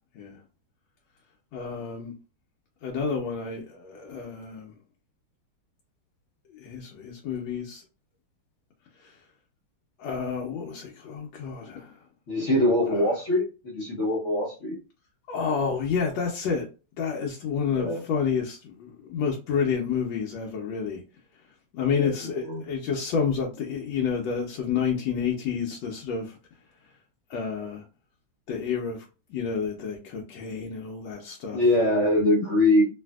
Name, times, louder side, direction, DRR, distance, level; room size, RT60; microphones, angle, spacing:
voice 1, 1.5-2.1 2.8-4.7 6.5-7.8 9.0-9.1 10.0-11.9 12.9-13.1 15.3-16.7 17.0-21.0 21.7-26.3 27.3-27.8 28.5-29.0 29.3-31.6, left 6 dB, 75° left, 1.2 m, -29 dB
voice 2, 12.3-14.8 17.7-18.0 21.9-22.1 22.5-22.6 31.5-32.8, left 1 dB, 60° left, 0.8 m, -23 dB
3.3 x 2.6 x 2.3 m
omnidirectional pair, 2.4 m